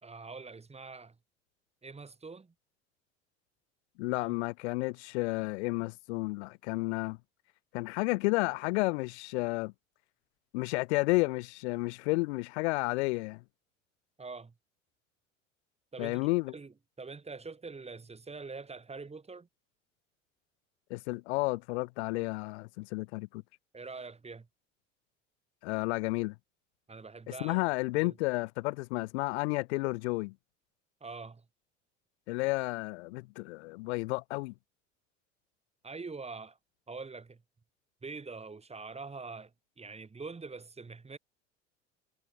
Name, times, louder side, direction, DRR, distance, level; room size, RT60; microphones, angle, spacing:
voice 1, 0.0-1.2 1.8-2.5 4.1-4.4 14.2-14.5 15.9-16.3 16.5-19.5 23.7-24.5 26.9-27.6 28.0-28.2 31.0-31.5 35.8-36.6 36.9-37.4 38.0-41.2, right 4 dB, 15° right, 3.7 m, -44 dB
voice 2, 4.0-7.2 7.7-9.7 10.5-13.4 16.0-16.5 20.9-23.4 25.6-26.3 27.4-30.3 32.3-34.5, left 24 dB, 60° left, 1.5 m, -31 dB
figure-of-eight pair, 70°, 38 cm